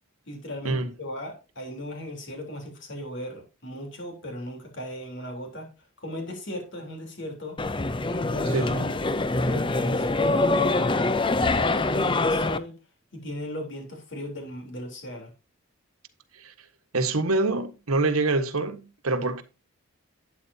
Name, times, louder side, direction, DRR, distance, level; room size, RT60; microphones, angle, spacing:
voice 1, 0.3-5.7 6.0-7.6 8.1-8.9 9.5-12.8 13.1-15.3, left 1 dB, 55° left, 3.6 m, -37 dB
sound 1, 7.6-12.6, left 2 dB, 25° left, 0.5 m, -24 dB
voice 2, 8.5-8.9 16.3-16.5 16.9-19.4, right 3 dB, 90° right, 1.4 m, -26 dB
12.0 x 8.9 x 2.8 m
head